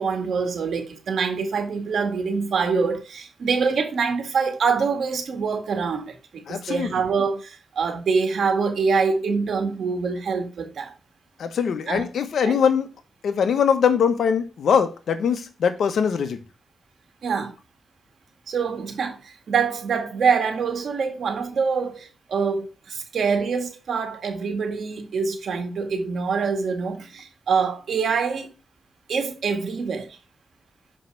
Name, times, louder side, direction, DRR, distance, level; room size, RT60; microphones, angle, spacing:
voice 1, 0.0-10.9 11.9-12.0 12.5-12.6 17.2-17.6 18.5-28.5 29.1-30.2, right 5 dB, 80° right, 1.8 m, -25 dB
voice 2, 6.5-6.9 11.4-12.9 13.2-16.4, left 7 dB, 85° left, 1.1 m, -22 dB
6.6 x 5.5 x 4.7 m
cardioid pair, 75°, 0 cm